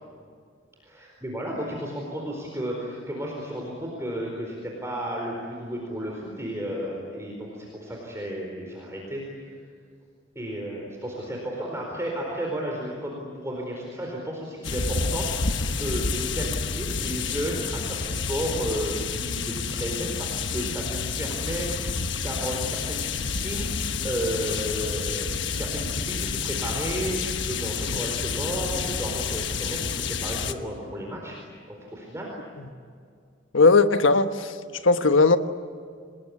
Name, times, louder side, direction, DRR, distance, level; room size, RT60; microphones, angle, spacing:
voice 1, 0.8-9.2 10.3-23.7 24.0-31.4 31.7-32.3, equal, 15° right, -1 dB, 4.4 m, -33 dB
sound 1, 14.6-30.5, left 5 dB, 70° left, 1.2 m, -29 dB
voice 2, 33.5-34.6 34.8-35.4, left 3 dB, 90° left, 9 dB, 1.3 m, -18 dB
27.5 x 20.0 x 9.7 m, 2.2 s
head